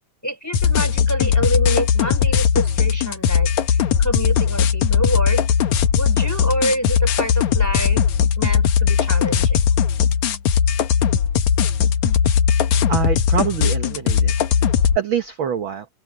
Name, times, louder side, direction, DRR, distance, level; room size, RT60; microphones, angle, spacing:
voice 1, 0.2-5.4 5.9-8.0 8.4-9.7 12.7-12.9, equal, 5° left, 3.7 m, -26 dB
sound 1, 0.5-15.0, left 7 dB, 70° left, 2.6 m, -18 dB
voice 2, 12.9-14.3 14.9-15.9, right 8 dB, 55° right, 1.6 m, -24 dB
open air
omnidirectional pair, 3.7 m